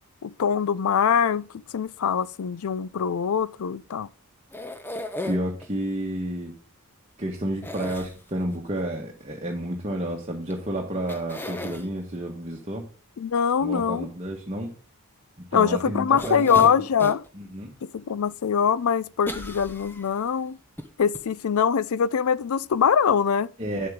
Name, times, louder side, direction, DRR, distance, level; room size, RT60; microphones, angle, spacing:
voice 1, 0.2-1.5 1.7-4.1 13.2-14.1 15.5-17.2 17.8-20.6 21.0-23.5, left 7 dB, 70° left, 0.4 m, -23 dB
sound 1, 4.5-5.7 7.6-8.6 10.5-10.6 11.1-11.9 16.2-17.3 17.8-17.9 19.3-20.2 20.8-20.9 21.1-21.2, left 1 dB, 10° left, 0.8 m, -35 dB
voice 2, 5.2-6.5 7.2-12.8 13.6-14.7 15.5-16.7 17.3-17.7 23.6-23.9, right 1 dB, 30° right, 1.4 m, -30 dB
9.8 x 7.5 x 3.7 m
head